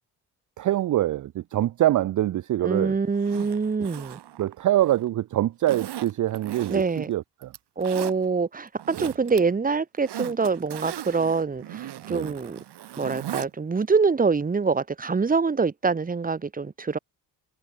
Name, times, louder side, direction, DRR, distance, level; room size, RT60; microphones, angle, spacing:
voice 1, 0.6-3.0 4.4-7.5 9.0-9.1 12.1-12.3, right 13 dB, 50° right, 0.5 m, -25 dB
voice 2, 2.6-4.2 6.7-7.1 7.8-12.6 13.0-17.0, right 4 dB, 20° right, 1.1 m, -25 dB
Zipper (clothing), 3.1-5.1 5.6-7.0 7.4-8.1 8.7-9.4 9.7-13.5 13.8-13.9, right 12 dB, 70° right, 2.8 m, -38 dB
cardioid pair, 95°, 41 cm